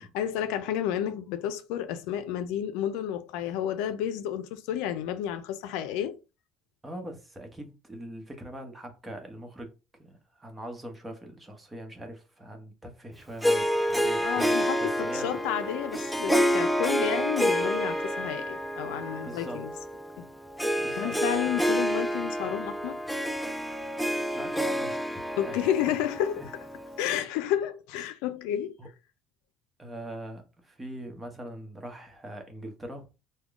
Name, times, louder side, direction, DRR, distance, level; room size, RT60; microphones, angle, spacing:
voice 1, 0.1-6.2 14.2-19.7 20.2-20.3 21.0-23.0 25.4-26.4 27.0-28.7, left 10 dB, 90° left, 0.4 m, -31 dB
voice 2, 6.8-9.7 10.0-14.5 14.8-15.4 19.2-19.6 20.8-21.1 21.5-21.7 24.3-25.7 26.4-26.5 28.8-28.9 29.8-33.1, right 1 dB, 15° right, 1.0 m, -42 dB
Harp, 13.4-27.0, equal, ahead, 0.3 m, -28 dB
3.6 x 2.2 x 3.5 m
cardioid pair, 110°, 0 cm